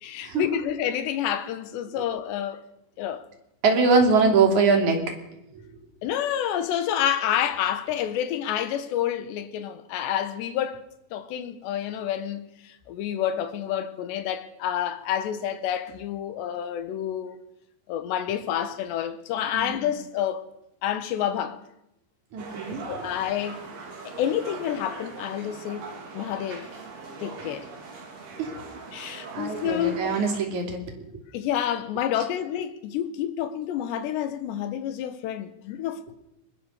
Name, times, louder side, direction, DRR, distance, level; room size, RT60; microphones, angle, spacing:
voice 1, 0.0-2.6 3.0-3.2 6.0-10.8 11.1-17.4 17.9-20.5 20.8-21.6 22.9-23.6 24.1-25.9 26.1-26.7 27.2-27.7 28.9-30.0 31.3-36.1, left 10 dB, 80° left, 3.5 m, -29 dB
voice 2, 3.6-5.0 5.5-5.6 19.5-19.9 22.3-22.8 28.4-28.5 29.0-31.1, right 4 dB, 45° right, 3.9 m, -23 dB
sound 1, 22.4-30.4, right 4 dB, 65° right, 5.3 m, -41 dB
21.5 x 20.5 x 6.6 m
omnidirectional pair, 5.1 m